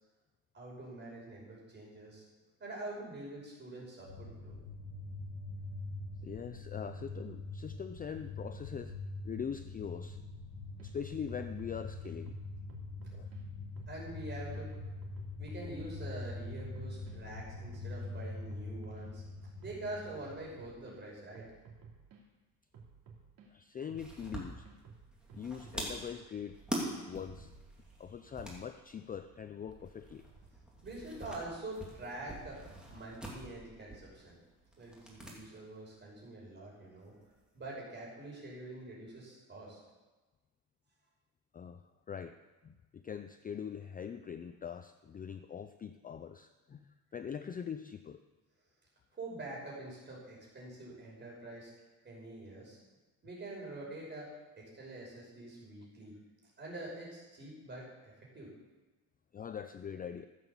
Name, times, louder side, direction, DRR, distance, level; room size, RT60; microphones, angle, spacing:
voice 1, 0.5-2.2 2.6-4.5 13.9-14.8 15.4-19.2 19.6-21.5 30.8-32.6 32.9-34.4 34.8-37.1 37.5-39.8 49.1-51.7 52.0-52.8 53.2-56.1 56.6-58.5, right 2 dB, 30° right, -3 dB, 5.6 m, -45 dB
sound 1, 4.0-20.9, left 2 dB, 70° left, 1.6 m, -44 dB
voice 2, 6.2-9.0 9.2-10.3 10.8-12.3 13.1-13.3 23.5-24.7 25.3-26.6 27.0-27.5 28.0-30.2 41.5-48.2 59.3-60.3, left 7 dB, 25° left, 9 dB, 0.4 m, -43 dB
sound 2, 10.5-10.9 11.3-13.4 13.8-15.9 16.3-21.0 21.3-22.2 22.7-23.5 23.9-25.8, right 5 dB, 85° right, 2.7 m, -56 dB
sound 3, 24.0-35.4 35.6-35.7 37.0-37.7, right 1 dB, ahead, 2.8 m, -45 dB
15.0 x 7.9 x 7.1 m, 1.2 s
cardioid pair, 155°, 36 cm